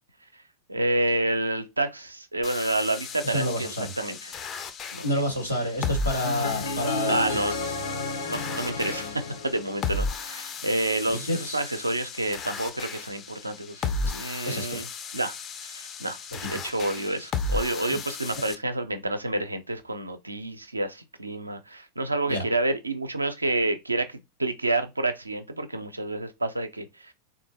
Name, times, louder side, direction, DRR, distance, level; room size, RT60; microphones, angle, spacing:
voice 1, 0.7-4.3 4.9-5.2 7.1-7.5 8.2-14.9 15.1-15.4 15.6-16.2 16.5-27.1, right 2 dB, 80° right, 0.5 m, -29 dB
sound 1, 2.4-18.5, left 4 dB, 30° left, 0.5 m, -35 dB
voice 2, 3.2-3.9 5.0-7.3 11.1-11.6 14.0-14.1 14.5-14.8 16.5-16.6 17.9-18.0 22.3-22.4, equal, 90° left, 1.5 m, -29 dB
sound 2, 6.2-10.3, left 3 dB, 70° left, 0.9 m, -32 dB
3.6 x 2.6 x 2.7 m
figure-of-eight pair, 90°, 0 cm